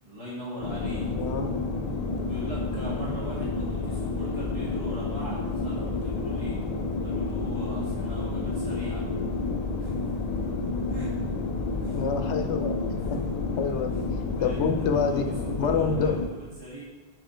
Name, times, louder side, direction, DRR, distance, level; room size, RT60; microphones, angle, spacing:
voice 1, 0.0-1.1 2.2-6.6 7.0-9.0 9.8-10.4 10.9-11.1 11.8-12.0 13.1-13.4 13.9-14.0 14.4-16.8, right 1 dB, 30° right, -8 dB, 2.1 m, -41 dB
sound 1, 0.6-16.3, left 3 dB, 50° left, 0.5 m, -30 dB
voice 2, 1.0-1.6 2.9-3.2 11.9-12.8 13.6-14.0 14.4-15.3 15.6-16.2, left 5 dB, 85° left, 5 dB, 1.0 m, -27 dB
5.7 x 5.0 x 4.3 m, 1.2 s
omnidirectional pair, 1.1 m